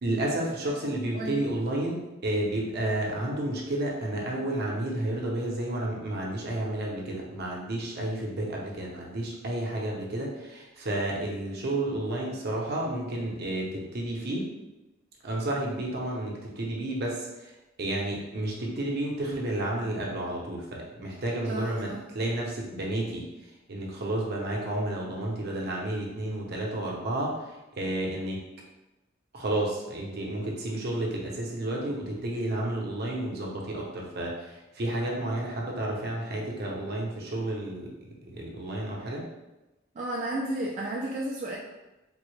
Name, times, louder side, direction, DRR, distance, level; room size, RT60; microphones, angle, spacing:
voice 1, 0.0-14.5 15.2-17.5 17.8-28.4 29.3-37.9 38.2-39.3, right 1 dB, 50° right, -2 dB, 0.7 m, -31 dB
voice 2, 0.9-1.4 21.4-22.0 40.0-41.6, right 1 dB, 35° right, -5 dB, 0.3 m, -33 dB
3.7 x 2.1 x 3.1 m, 1.0 s
head